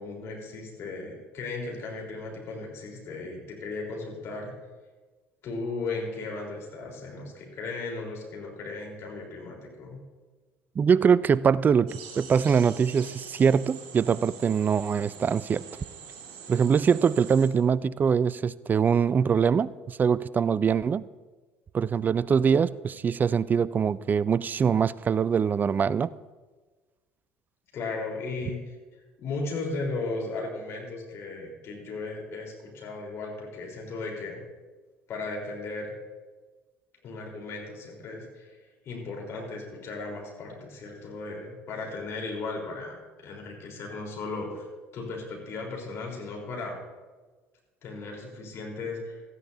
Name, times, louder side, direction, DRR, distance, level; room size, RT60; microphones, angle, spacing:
voice 1, 0.0-4.5 5.4-10.0 27.7-28.8 29.2-34.4 35.1-36.0 37.0-38.6 38.8-44.7 44.9-46.8 47.8-49.2, left 3 dB, 50° left, -1 dB, 4.0 m, -36 dB
voice 2, 10.8-15.7 16.5-21.0 21.7-26.1, right 6 dB, 30° right, 20 dB, 0.4 m, -23 dB
sound 1, 11.9-17.5, right 7 dB, 70° right, 1.9 m, -45 dB
17.0 x 13.5 x 2.8 m, 1.3 s
hypercardioid pair, 60°, 6 cm